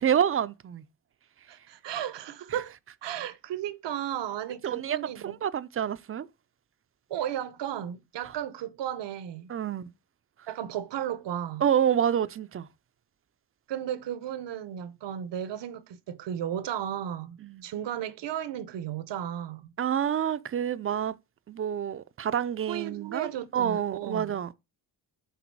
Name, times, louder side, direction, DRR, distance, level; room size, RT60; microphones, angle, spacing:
voice 1, 0.0-0.8 4.6-6.3 9.5-9.9 11.6-12.7 17.4-17.7 19.8-21.1 21.5-24.5, right 9 dB, 35° right, 0.4 m, -28 dB
voice 2, 1.5-2.7 3.0-5.4 7.1-9.5 10.5-11.6 13.7-19.7 22.7-24.4, right 10 dB, 80° right, 0.8 m, -34 dB
8.2 x 3.9 x 4.5 m
cardioid pair, 115°, 42 cm